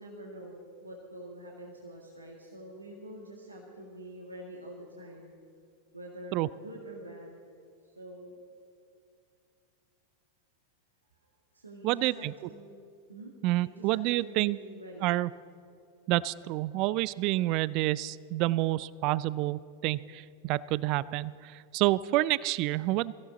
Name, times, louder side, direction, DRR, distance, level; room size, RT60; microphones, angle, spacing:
voice 1, 0.0-5.3 5.9-7.4 7.8-8.4 11.2-12.7 13.1-15.1, right 1 dB, 80° right, -1 dB, 1.9 m, -46 dB
voice 2, 11.8-12.3 13.4-14.6 15.0-15.3 16.1-23.1, right 17 dB, 40° right, 21 dB, 0.3 m, -28 dB
23.0 x 15.5 x 4.0 m, 2.4 s
figure-of-eight pair, 90°, 0 cm